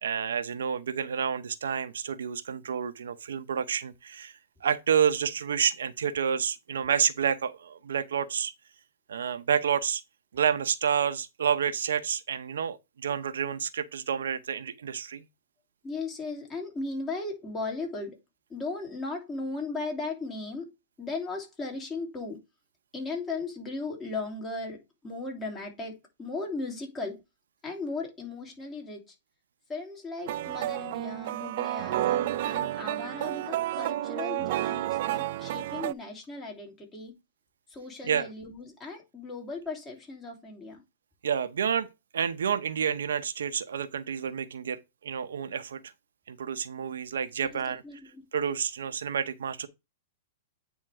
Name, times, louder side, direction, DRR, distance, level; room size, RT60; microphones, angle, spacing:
voice 1, 0.0-4.3 4.6-8.5 9.1-10.0 10.3-15.2 38.1-38.3 41.2-41.9 42.1-45.9 46.3-47.8 48.3-49.7, right 7 dB, 85° right, 0.8 m, -29 dB
voice 2, 15.8-18.2 18.5-20.6 21.0-22.4 22.9-27.2 27.6-29.0 29.7-37.1 37.7-40.8 47.8-48.2, left 3 dB, 20° left, 3.2 m, -37 dB
sound 1, 30.3-35.9, right 14 dB, 60° right, 0.4 m, -30 dB
9.1 x 3.6 x 4.8 m
hypercardioid pair, 125°, 0 cm